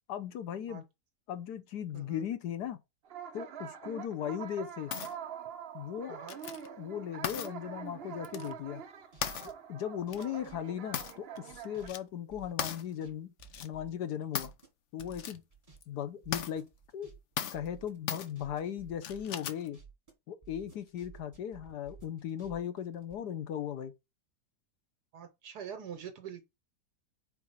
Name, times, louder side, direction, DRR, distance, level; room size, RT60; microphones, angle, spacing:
voice 1, 0.1-0.8 1.3-2.8 3.3-4.9 5.7-6.2 6.8-8.8 9.7-13.3 13.6-14.5 14.9-15.4 15.9-17.1 17.5-19.8 20.3-23.9, left 9 dB, 75° left, 1.4 m, -37 dB
voice 2, 1.9-2.3 6.1-6.4 25.1-26.4, right 8 dB, 75° right, 1.4 m, -44 dB
sound 1, 3.0-11.9, right 8 dB, 55° right, 0.6 m, -45 dB
sound 2, 4.9-5.1 6.3-6.7 7.2-7.5 8.2-8.5 9.2-9.5 10.1-10.3 10.9-11.4 11.6-12.0 12.6-12.8 13.4-13.7 14.3-14.6 15.0-15.4 15.8-15.9 16.3-16.5 17.4-17.7 18.1-18.3 19.0-19.7, left 9 dB, 60° left, 0.8 m, -37 dB
sound 3, 7.8-9.5 10.0-13.1 13.4-14.7 15.0-15.8 16.0-20.1 20.4-23.2, right 5 dB, 20° right, 1.9 m, -55 dB
4.9 x 3.9 x 5.5 m
omnidirectional pair, 1.7 m